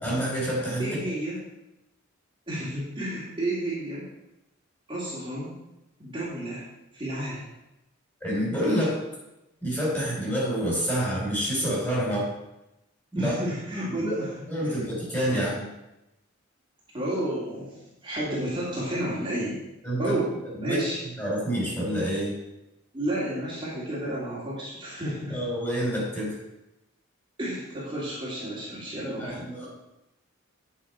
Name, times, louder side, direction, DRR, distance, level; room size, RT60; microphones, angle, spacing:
voice 1, 0.0-1.0 8.2-9.0 9.6-12.3 13.2-13.3 13.8-14.1 14.5-15.7 19.8-20.1 20.6-20.8 21.2-22.3 25.3-26.3 29.0-29.7, equal, 10° left, -6 dB, 3.7 m, -28 dB
voice 2, 0.8-1.5 2.5-4.1 4.9-5.5 6.0-6.6 6.9-7.5 13.1-14.9 15.3-15.4 16.9-19.6 20.0-20.3 20.6-21.0 22.9-25.4 27.4-29.4, right 1 dB, 25° right, -9 dB, 2.4 m, -31 dB
9.1 x 6.2 x 4.4 m, 0.91 s
head